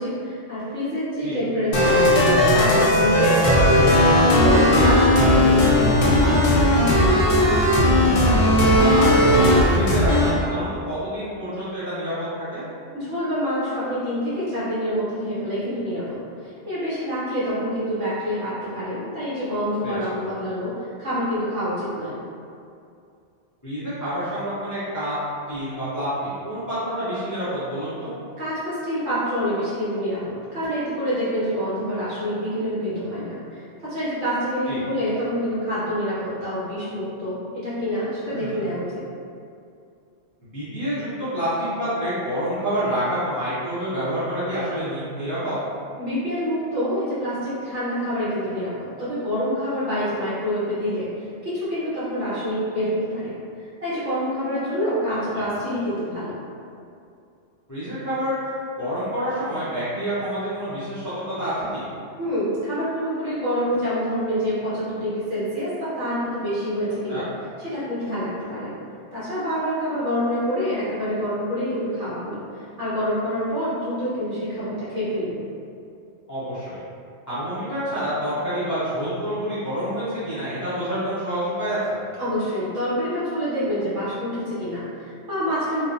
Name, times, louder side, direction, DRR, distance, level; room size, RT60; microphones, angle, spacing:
voice 1, 0.0-6.5 12.9-22.2 28.4-39.0 46.0-51.1 51.4-53.3 53.8-56.4 62.2-67.2 67.6-68.8 69.1-75.4 82.2-85.9, equal, 65° right, -11 dB, 1.4 m, -27 dB
sound 1, 1.7-10.3, left 1 dB, 80° left, 1.0 m, -17 dB
voice 2, 7.4-7.8 8.5-12.7 19.8-20.0 23.6-25.2 25.5-28.1 34.7-34.8 38.3-38.7 40.4-45.6 55.3-55.5 57.7-61.9 67.1-67.2 76.3-76.8 77.3-82.0, equal, 20° left, -13 dB, 0.5 m, -28 dB
2.9 x 2.0 x 2.5 m, 2.5 s
omnidirectional pair, 1.3 m